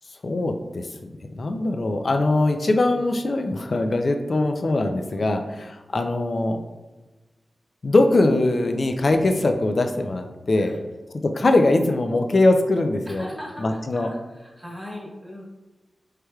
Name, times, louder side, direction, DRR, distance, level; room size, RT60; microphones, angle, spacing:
voice 1, 0.2-6.6 7.8-10.8 11.3-13.3 13.6-14.1, left 2 dB, 60° left, 5 dB, 0.4 m, -21 dB
voice 2, 5.1-5.6 10.5-10.8 13.0-15.4, left 1 dB, 5° left, -3 dB, 1.3 m, -39 dB
4.4 x 3.3 x 2.2 m, 1.1 s
cardioid pair, 50°, 0 cm